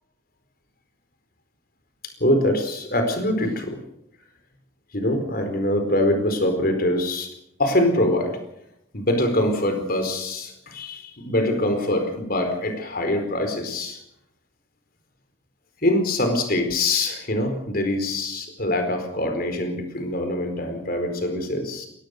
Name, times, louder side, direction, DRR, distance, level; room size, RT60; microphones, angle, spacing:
voice 1, 2.2-3.8 4.9-7.3 7.6-8.4 8.9-14.0 15.8-21.9, left 1 dB, 50° left, 7 dB, 4.5 m, -24 dB
23.5 x 18.5 x 6.7 m, 0.77 s
head